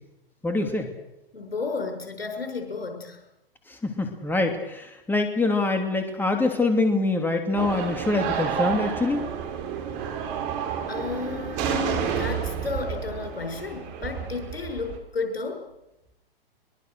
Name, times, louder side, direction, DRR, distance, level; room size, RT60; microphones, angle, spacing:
voice 1, 0.4-0.9 3.7-9.3, left 2 dB, 5° left, 5 dB, 2.8 m, -25 dB
voice 2, 1.3-3.2 10.9-15.6, left 4 dB, 80° left, 4 dB, 6.5 m, -32 dB
sound 1, 7.6-15.0, right 8 dB, 40° right, 4.3 m, -30 dB
23.0 x 22.0 x 6.6 m, 0.91 s
figure-of-eight pair, 105°, 29 cm